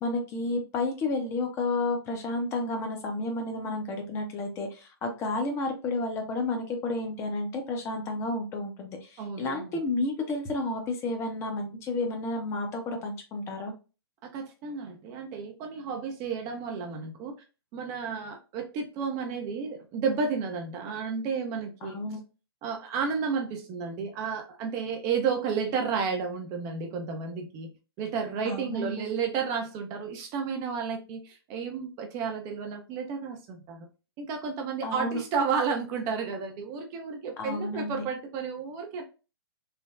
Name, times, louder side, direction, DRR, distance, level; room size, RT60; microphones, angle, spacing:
voice 1, 0.0-13.7 21.8-22.2 28.4-29.1 34.8-35.2 37.4-38.0, left 2 dB, 20° left, 0.6 m, -31 dB
voice 2, 9.2-9.7 14.3-17.3 17.7-22.0 22.6-27.7 28.0-33.9 34.2-39.0, right 5 dB, 25° right, 0.4 m, -32 dB
3.2 x 2.0 x 2.3 m
figure-of-eight pair, 120°, 13 cm